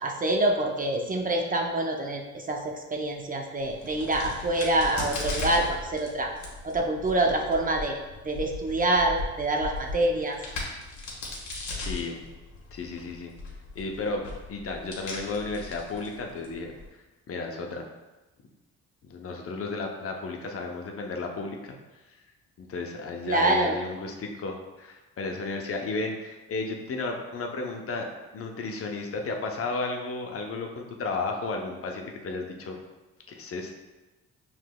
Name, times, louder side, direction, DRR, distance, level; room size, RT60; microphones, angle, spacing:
voice 1, 0.0-6.3 6.6-8.0 8.2-10.4 23.3-23.8, right 2 dB, 30° right, 2 dB, 0.5 m, -26 dB
Crack, 3.6-16.9, left 3 dB, 70° left, 1.3 m, -38 dB
voice 2, 11.7-12.2 12.7-13.3 13.8-16.7 17.3-17.9 19.0-21.8 22.6-28.1 28.3-32.8 33.3-33.8, left 3 dB, 50° left, 2 dB, 0.7 m, -33 dB
5.8 x 3.2 x 2.2 m, 1.1 s
cardioid pair, 90°, 30 cm